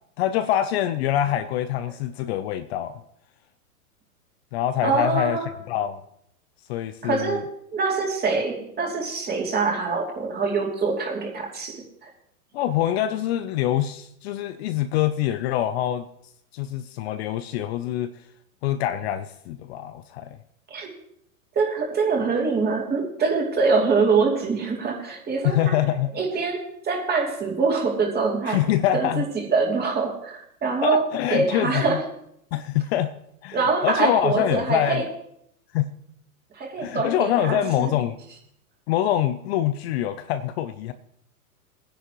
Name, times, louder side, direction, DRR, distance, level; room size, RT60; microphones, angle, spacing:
voice 1, 0.2-3.0 4.5-5.4 5.7-6.0 6.7-7.4 12.5-16.1 16.5-18.1 18.6-20.4 25.4-26.1 28.5-29.2 30.8-32.0 32.5-33.1 33.4-35.0 35.7-35.9 36.8-38.2 38.9-40.9, left 11 dB, 45° left, 11 dB, 0.7 m, -25 dB
voice 2, 4.8-5.5 7.0-7.4 7.7-12.1 20.7-20.9 21.5-25.7 26.1-28.6 28.9-32.1 33.5-35.0 36.5-37.9, right 4 dB, 20° right, 0 dB, 2.8 m, -24 dB
20.5 x 10.0 x 3.1 m, 0.74 s
hypercardioid pair, 115°, 46 cm